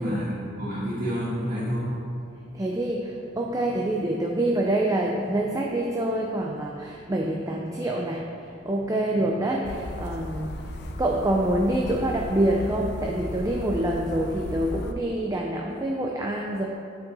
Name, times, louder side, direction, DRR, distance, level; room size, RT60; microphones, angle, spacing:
voice 1, 0.0-2.0 9.2-9.3, equal, 45° right, -11 dB, 1.7 m, -29 dB
voice 2, 2.3-16.6, right 1 dB, 15° right, -1 dB, 0.4 m, -26 dB
sound 1, 9.6-14.9, left 1 dB, 50° left, 0.5 m, -35 dB
8.4 x 5.4 x 4.0 m, 2.5 s
head